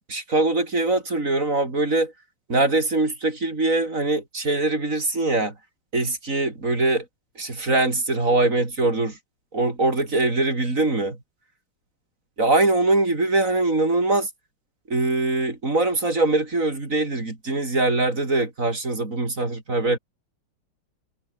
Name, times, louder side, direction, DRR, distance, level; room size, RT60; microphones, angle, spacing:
voice 1, 0.1-2.1 2.5-5.5 5.9-7.0 7.4-9.2 9.5-11.2 12.4-14.3 14.9-20.0, right 2 dB, 35° right, 4.4 m, -22 dB
omnidirectional pair, 2.4 m